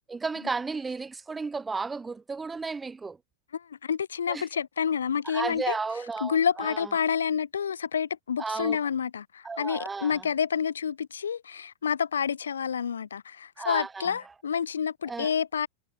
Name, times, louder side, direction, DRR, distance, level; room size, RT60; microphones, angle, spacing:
voice 1, 0.1-3.2 4.3-4.5 5.2-6.9 8.4-8.8 9.4-10.3 13.6-14.1 15.1-15.3, right 4 dB, 15° right, 1.5 m, -33 dB
voice 2, 3.5-5.8 6.2-15.7, left 7 dB, 70° left, 4.2 m, -29 dB
figure-of-eight pair, 90°, 0 cm